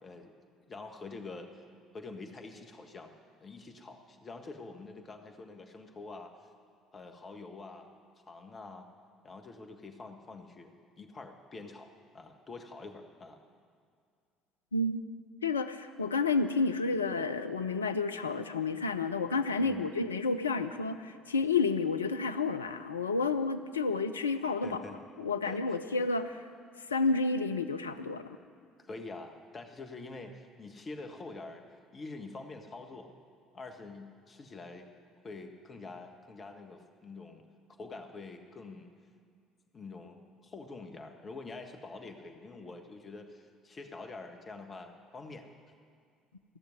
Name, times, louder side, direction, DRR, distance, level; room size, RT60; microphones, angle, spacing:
voice 1, 0.0-0.3 0.7-1.6 1.9-3.1 3.4-6.3 6.9-7.9 8.3-8.9 9.2-10.7 11.0-13.4 19.6-19.9 24.6-25.0 25.4-25.8 28.8-31.6 31.9-33.1 33.5-34.9 35.2-37.4 37.8-38.9 39.7-45.5, left 3 dB, 35° left, 5 dB, 1.6 m, -46 dB
voice 2, 14.7-15.0 15.4-24.8 25.2-26.4 26.9-28.2, left 4 dB, 85° left, 10 dB, 0.5 m, -30 dB
16.0 x 6.8 x 9.9 m, 2.2 s
figure-of-eight pair, 55°, 0 cm